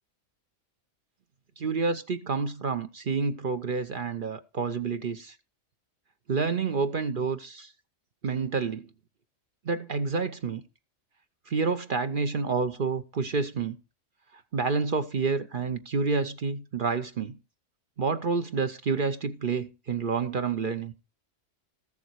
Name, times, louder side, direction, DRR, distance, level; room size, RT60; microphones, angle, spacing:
voice 1, 1.6-5.3 6.3-7.7 8.2-8.9 9.6-10.6 11.5-13.8 14.5-17.4 18.0-20.9, right 4 dB, 45° right, 0.9 m, -29 dB
14.0 x 7.2 x 4.6 m
omnidirectional pair, 1.3 m